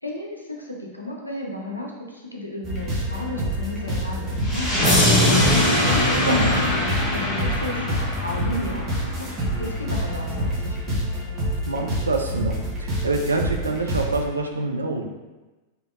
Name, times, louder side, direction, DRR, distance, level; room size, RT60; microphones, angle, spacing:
voice 1, 0.0-6.7 7.1-9.3 9.6-10.8, left 1 dB, 90° left, -1 dB, 0.5 m, -33 dB
sound 1, 2.6-14.2, equal, 30° right, 0.9 m, -27 dB
sound 2, 4.4-9.4, left 1 dB, 25° left, 1.1 m, -22 dB
voice 2, 6.3-6.7 11.7-15.0, right 3 dB, 75° right, 3 dB, 0.3 m, -26 dB
3.4 x 2.7 x 2.4 m, 1.1 s
figure-of-eight pair, 90°, 0 cm